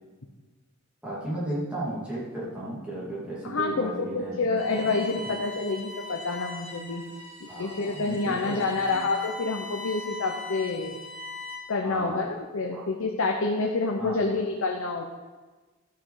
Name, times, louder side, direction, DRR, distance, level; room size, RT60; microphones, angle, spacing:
voice 1, 1.0-5.3 7.5-9.0 11.8-12.3 12.7-12.8 14.0-14.4, right 1 dB, 5° right, -8 dB, 2.7 m, -35 dB
voice 2, 3.4-7.0 7.4-11.0 11.7-15.0, left 3 dB, 70° left, 1 dB, 0.8 m, -28 dB
Bowed string instrument, 4.6-11.8, left 2 dB, 25° left, 2.5 m, -40 dB
12.0 x 5.9 x 4.9 m, 1.3 s
head